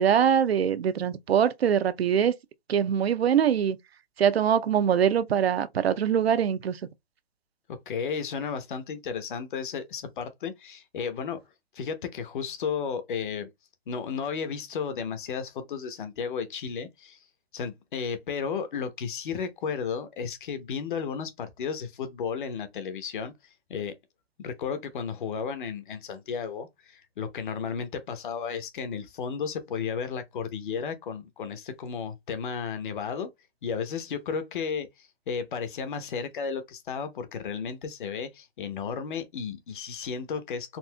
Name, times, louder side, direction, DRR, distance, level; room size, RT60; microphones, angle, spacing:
voice 1, 0.0-2.4 2.7-3.8 4.2-6.8, right 8 dB, 80° right, 0.6 m, -23 dB
voice 2, 7.7-11.4 11.7-13.5 13.9-17.2 17.5-23.9 24.4-33.3 33.6-40.8, left 6 dB, 55° left, 0.8 m, -33 dB
4.1 x 2.6 x 2.2 m
hypercardioid pair, 140°, 31 cm